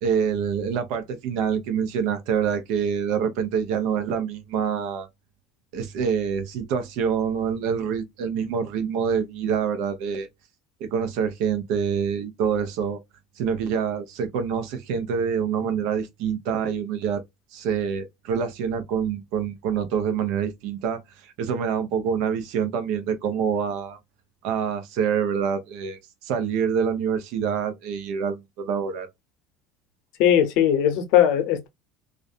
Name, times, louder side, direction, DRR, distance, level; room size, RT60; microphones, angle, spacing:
voice 1, 0.0-5.1 5.7-10.3 10.8-13.0 13.4-17.2 17.5-24.0 24.4-29.1, right 7 dB, 70° right, 0.7 m, -26 dB
voice 2, 30.2-31.7, left 10 dB, 70° left, 0.7 m, -19 dB
2.4 x 2.1 x 2.5 m
supercardioid pair, 100°, 0 cm